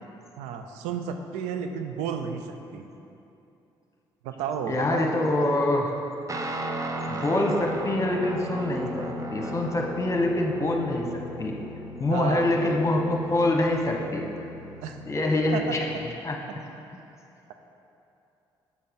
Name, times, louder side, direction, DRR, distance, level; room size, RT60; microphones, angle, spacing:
voice 1, 0.4-2.4 2.7-2.8 4.2-5.3 5.6-5.7 12.1-12.5 14.8-15.0 15.5-15.6, right 7 dB, 85° right, 6 dB, 0.4 m, -32 dB
voice 2, 4.7-5.9 7.1-11.0 11.4-11.5 12.0-14.3 15.1-15.9 16.2-16.4, left 1 dB, 25° left, 1 dB, 1.1 m, -25 dB
Guitar, 6.3-16.0, equal, 30° right, 0.7 m, -36 dB
6.9 x 6.5 x 3.8 m, 2.8 s
hypercardioid pair, 50°, 11 cm